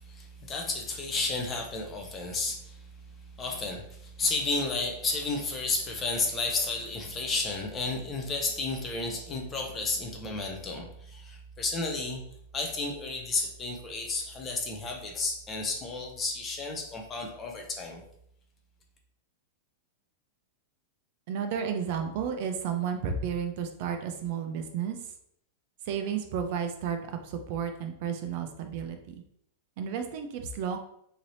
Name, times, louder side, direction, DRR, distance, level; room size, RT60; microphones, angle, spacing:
voice 1, 0.1-2.8 3.4-12.2 12.5-18.0, left 3 dB, 15° left, 2 dB, 0.5 m, -32 dB
voice 2, 21.3-25.0 25.9-29.2 29.8-30.8, right 7 dB, 40° right, 5 dB, 0.4 m, -32 dB
3.1 x 2.7 x 4.0 m, 0.71 s
supercardioid pair, 175°, 0 cm